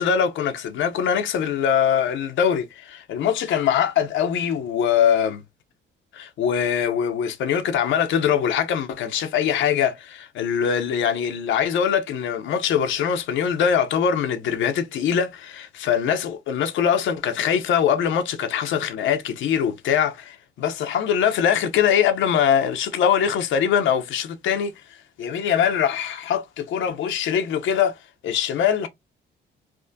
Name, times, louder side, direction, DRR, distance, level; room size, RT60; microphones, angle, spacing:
voice 1, 0.0-5.4 6.1-24.7 25.2-28.0 28.2-28.9, left 8 dB, 75° left, 0.6 m, -22 dB
3.4 x 2.1 x 2.5 m
cardioid pair, 90°, 20 cm